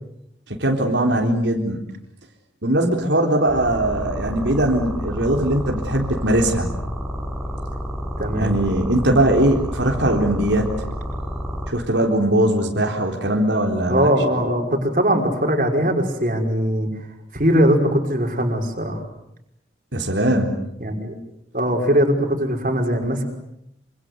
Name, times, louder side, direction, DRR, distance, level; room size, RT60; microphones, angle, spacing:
voice 1, 0.6-1.8 2.6-6.7 8.3-10.7 11.7-14.1 19.9-20.5, right 1 dB, 85° right, 1 dB, 4.0 m, -20 dB
sound 1, 3.5-11.7, equal, 5° right, 6.4 m, -29 dB
voice 2, 8.2-8.6 13.9-16.9 17.3-19.0 20.8-21.2 21.5-23.3, equal, 45° right, 2 dB, 5.7 m, -20 dB
27.0 x 26.5 x 8.2 m, 0.79 s
head